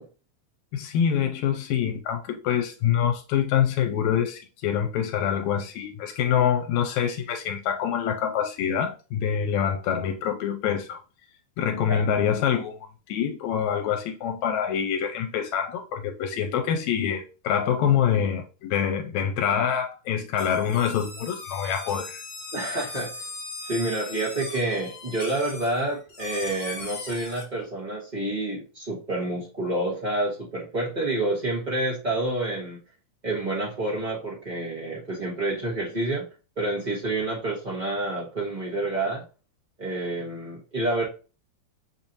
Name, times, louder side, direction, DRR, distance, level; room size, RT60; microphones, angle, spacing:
voice 1, 0.7-11.0 11.6-12.8 13.1-22.2, left 8 dB, 85° left, 1.9 m, -25 dB
sound 1, 20.4-27.5, left 3 dB, 35° left, 1.2 m, -39 dB
voice 2, 22.5-23.2 23.6-32.8 33.2-36.3 36.6-39.2 39.8-41.0, right 2 dB, 60° right, 0.4 m, -28 dB
6.9 x 2.7 x 2.8 m
omnidirectional pair, 3.3 m